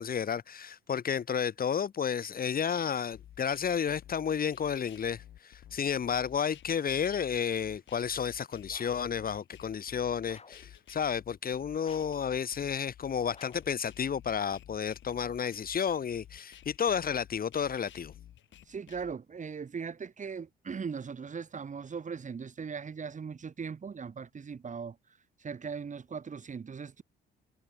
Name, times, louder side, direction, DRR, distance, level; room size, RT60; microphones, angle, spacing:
voice 1, 0.0-18.1, left 7 dB, 45° left, 1.8 m, -32 dB
sound 1, 3.1-19.1, left 11 dB, 70° left, 3.9 m, -53 dB
sound 2, 8.7-9.2 10.3-10.7 11.8-12.3 13.3-13.8, left 4 dB, 30° left, 6.6 m, -54 dB
voice 2, 18.7-25.0 25.4-27.0, right 6 dB, 40° right, 2.5 m, -39 dB
cardioid pair, 90°, 20 cm